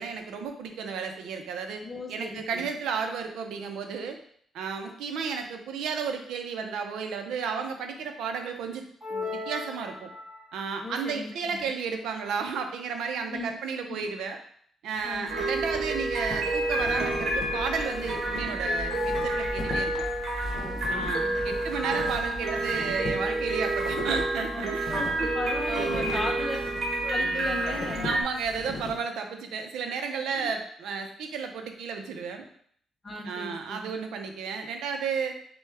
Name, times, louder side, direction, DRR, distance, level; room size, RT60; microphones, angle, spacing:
voice 1, 0.0-1.8 2.1-4.2 4.5-8.8 9.1-10.1 10.5-14.4 14.8-19.9 20.9-24.8 25.2-26.3 28.0-32.4 33.2-35.3, right 5 dB, 90° right, 5 dB, 0.6 m, -33 dB
voice 2, 1.8-2.7 10.8-11.7 13.3-13.5 13.9-14.0 15.0-15.5 20.5-21.6 24.5-26.6 26.9-28.1 30.3-30.5 33.0-33.8, left 2 dB, 20° left, 2 dB, 0.7 m, -37 dB
sound 1, 9.0-10.7, left 3 dB, ahead, 1.5 m, -36 dB
sound 2, 15.0-29.0, left 1 dB, 40° left, 1.1 m, -40 dB
sound 3, 15.3-28.2, right 2 dB, 55° right, 1.0 m, -29 dB
6.3 x 2.3 x 3.4 m, 0.62 s
cardioid pair, 165°, 0 cm